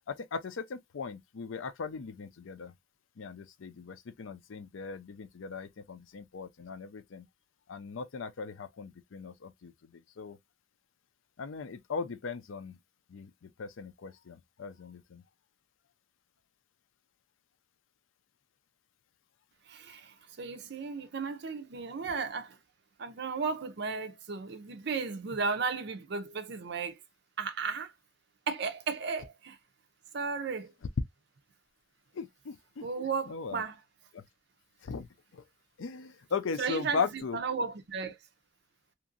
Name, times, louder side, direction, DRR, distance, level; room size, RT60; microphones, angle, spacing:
voice 1, 0.1-2.7 3.2-7.3 7.7-10.4 11.4-12.8 13.1-15.2 32.1-32.9 33.3-33.6 34.1-34.2 34.8-35.1 35.3-35.4 35.8-37.4, left 5 dB, 90° left, 0.5 m, -38 dB
voice 2, 19.7-22.6 23.0-27.0 27.4-27.9 28.5-29.6 30.1-30.7 32.8-33.8 36.6-38.2, right 5 dB, 60° right, 0.6 m, -35 dB
2.9 x 2.5 x 2.5 m
head